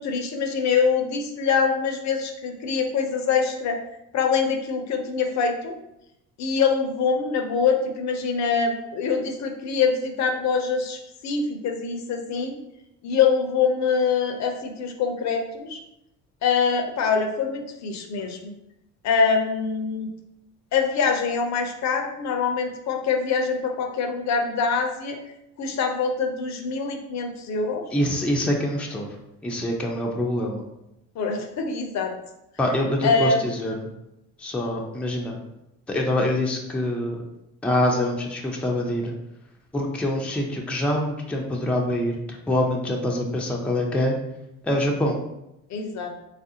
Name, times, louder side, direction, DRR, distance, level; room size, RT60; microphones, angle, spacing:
voice 1, 0.0-3.8 4.1-5.7 6.4-11.0 11.2-12.5 13.0-15.8 16.4-18.5 19.0-20.1 20.7-25.2 25.6-27.8 31.2-32.1 33.0-33.4 45.7-46.1, left 5 dB, 50° left, 4 dB, 0.6 m, -24 dB
voice 2, 27.9-29.1 29.4-30.6 32.6-33.9 34.4-35.4 35.9-37.2 37.6-39.1 39.7-44.1 44.6-45.2, left 1 dB, 5° left, 0 dB, 0.5 m, -25 dB
3.3 x 2.4 x 2.7 m, 0.86 s
supercardioid pair, 70°, 36 cm